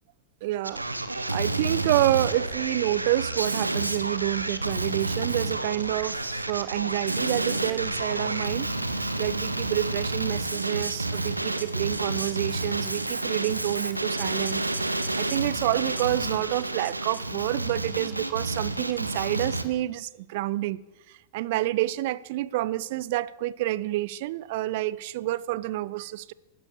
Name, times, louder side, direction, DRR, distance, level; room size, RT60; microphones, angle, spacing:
voice 1, 0.4-0.8 1.1-6.2 6.5-8.7 9.2-14.6 15.2-26.3, right 16 dB, 50° right, 0.7 m, -28 dB
Male speech man speaking, 0.6-19.6, right 2 dB, 85° right, 1.2 m, -30 dB
15.0 x 12.5 x 6.8 m
figure-of-eight pair, 90°, 0 cm